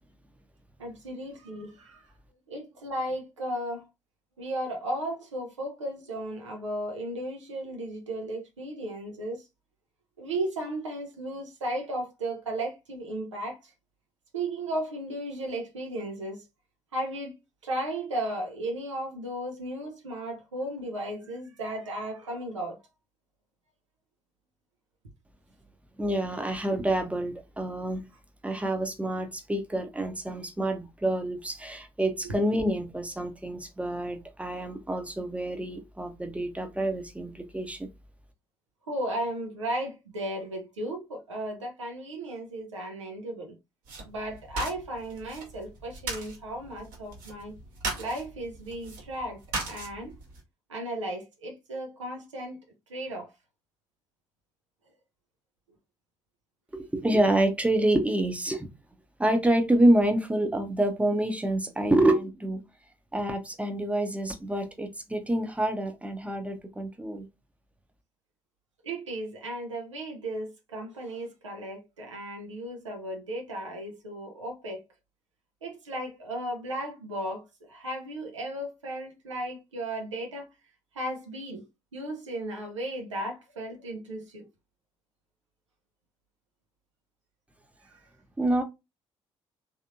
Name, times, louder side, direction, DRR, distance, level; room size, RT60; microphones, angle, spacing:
voice 1, 0.8-2.1 2.5-3.9 4.4-9.4 10.2-13.7 14.3-16.4 16.9-17.3 17.6-22.8 32.2-32.3 38.9-43.6 44.0-47.5 48.0-49.4 49.6-50.2 50.7-52.6 52.9-53.3 68.8-74.8 75.6-80.5 80.9-81.7 81.9-84.5 87.8-88.0, right 1 dB, 85° right, 0.7 m, -35 dB
voice 2, 26.0-28.1 28.4-37.9 56.7-58.7 59.2-62.6 63.1-67.3 88.4-88.6, right 1 dB, 10° right, 0.8 m, -27 dB
sound 1, 43.8-50.4, right 3 dB, 60° right, 1.3 m, -39 dB
3.4 x 2.7 x 2.6 m
figure-of-eight pair, 45°, 15 cm